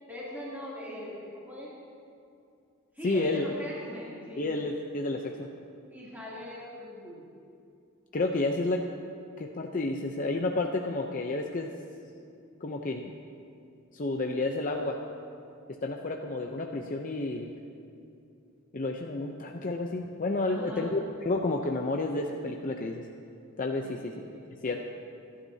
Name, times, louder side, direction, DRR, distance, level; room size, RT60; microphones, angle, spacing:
voice 1, 0.1-1.7 2.9-4.5 5.9-7.3 20.5-21.0 23.8-24.5, left 1 dB, 10° right, -8 dB, 2.7 m, -41 dB
voice 2, 3.0-3.5 4.4-5.5 8.1-8.8 9.4-11.7 12.6-13.1 13.9-15.0 15.8-17.5 18.7-23.0 23.6-24.1 24.6-24.8, left 2 dB, 40° left, 2 dB, 0.6 m, -30 dB
26.5 x 11.5 x 2.8 m, 2.5 s
head